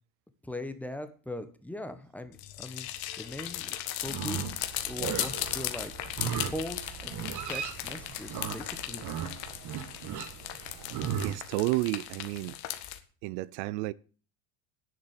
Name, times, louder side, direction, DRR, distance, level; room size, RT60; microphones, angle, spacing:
voice 1, 0.4-2.9 3.2-3.8 4.0-5.9 6.5-9.0, left 1 dB, 5° left, 1.2 m, -40 dB
sound 1, 2.3-13.0, left 14 dB, 70° left, 1.8 m, -37 dB
Livestock farm animals working animals, 4.0-11.3, right 8 dB, 45° right, 1.7 m, -37 dB
voice 2, 11.2-12.6 13.2-13.9, right 20 dB, 75° right, 0.7 m, -31 dB
10.0 x 7.4 x 8.2 m
cardioid pair, 145°, 42 cm